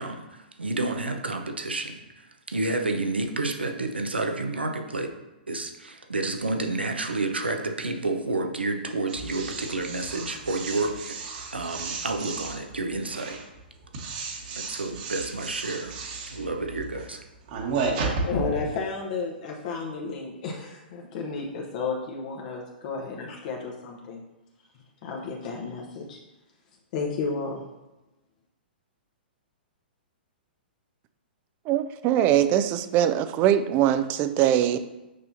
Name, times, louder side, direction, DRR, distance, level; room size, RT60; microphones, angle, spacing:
voice 1, 0.0-2.0 2.5-5.1 5.5-11.2 11.5-13.4 14.4-15.9 16.3-17.2, right 2 dB, 90° right, 5 dB, 0.8 m, -30 dB
sound 1, 9.1-18.7, right 4 dB, 50° right, 1.3 m, -33 dB
voice 2, 18.2-24.2 25.0-26.2 26.9-27.6, left 4 dB, 50° left, -1 dB, 1.0 m, -32 dB
voice 3, 31.7-34.8, right 11 dB, 30° right, 11 dB, 0.4 m, -22 dB
6.6 x 5.5 x 2.7 m, 1.0 s
hypercardioid pair, 120°, 6 cm